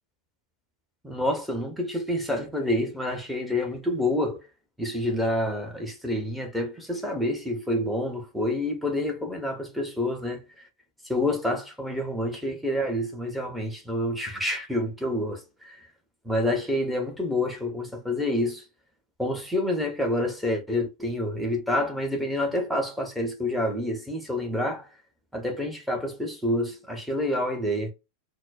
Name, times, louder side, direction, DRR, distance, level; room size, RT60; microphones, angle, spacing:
voice 1, 1.0-4.4 4.8-10.4 11.0-15.8 16.2-18.6 19.2-24.9 25.3-27.9, left 1 dB, ahead, 1.0 m, -28 dB
4.2 x 2.2 x 2.4 m
figure-of-eight pair, 90°, 0 cm